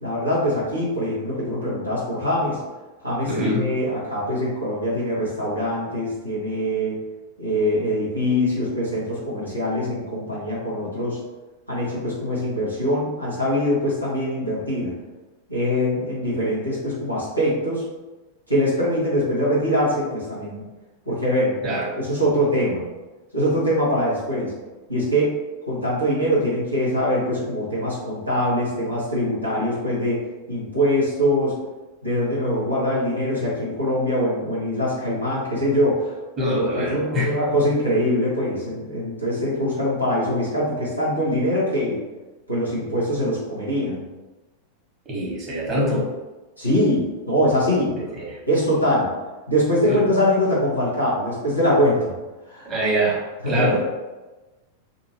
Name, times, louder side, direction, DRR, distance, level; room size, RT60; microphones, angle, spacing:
voice 1, 0.0-2.6 3.0-7.0 7.4-11.2 11.7-14.9 15.5-17.8 18.5-20.6 21.0-21.6 21.9-22.8 23.3-24.5 24.9-25.3 25.7-30.2 30.5-31.6 32.0-36.1 36.6-42.0 42.5-44.0 46.6-47.9 48.5-49.1 49.5-52.1 52.5-52.7 53.4-54.1, equal, 85° right, -8 dB, 1.2 m, -23 dB
voice 2, 3.3-3.7 21.6-21.8 36.4-37.4 45.1-46.0 48.0-48.4 49.9-50.0 52.6-53.8, equal, 30° right, -5 dB, 1.3 m, -24 dB
2.8 x 2.6 x 2.8 m, 1.2 s
figure-of-eight pair, 90°, 0 cm